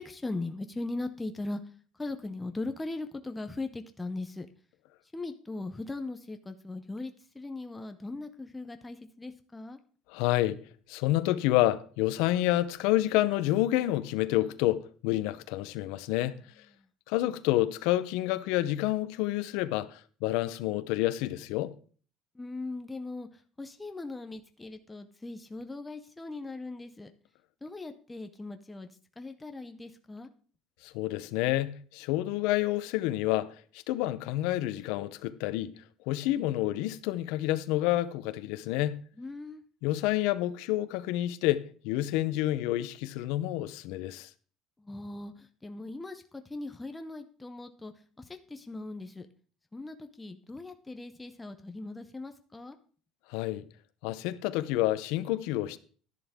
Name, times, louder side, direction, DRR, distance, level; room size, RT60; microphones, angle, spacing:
voice 1, 0.0-1.6 1.9-4.5 5.1-9.8 16.8-16.9 22.3-27.1 27.6-28.9 29.2-30.3 39.2-39.6 44.8-49.3 49.7-52.8, left 2 dB, 10° left, 0.6 m, -39 dB
voice 2, 10.1-10.6 10.9-16.4 17.1-21.7 30.8-35.7 36.1-39.0 39.8-44.3 53.3-53.6 54.0-55.8, left 15 dB, 75° left, 0.7 m, -29 dB
11.0 x 10.5 x 3.6 m
cardioid pair, 165°, 0 cm